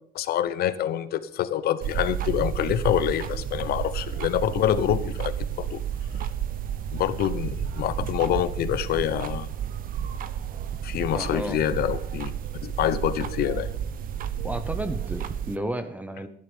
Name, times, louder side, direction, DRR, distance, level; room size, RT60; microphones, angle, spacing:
voice 1, 0.1-5.8 6.9-9.5 10.8-12.3 12.6-13.7, left 11 dB, 65° left, 14 dB, 1.0 m, -26 dB
sound 1, 1.8-15.6, right 9 dB, 55° right, 0.8 m, -31 dB
voice 2, 11.1-11.6 14.4-16.3, right 1 dB, 10° right, 9 dB, 0.9 m, -32 dB
12.5 x 10.5 x 5.4 m, 0.68 s
cardioid pair, 110°, 17 cm